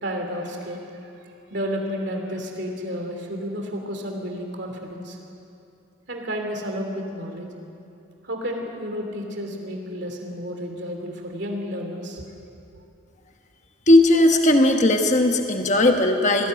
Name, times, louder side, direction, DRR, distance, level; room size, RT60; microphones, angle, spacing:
voice 1, 0.0-5.2 6.1-7.5 8.2-12.2 12.7-12.8, equal, 55° right, 2 dB, 3.1 m, -31 dB
voice 2, 13.9-16.5, left 1 dB, 35° left, 4 dB, 1.2 m, -17 dB
20.5 x 16.5 x 9.6 m, 2.7 s
head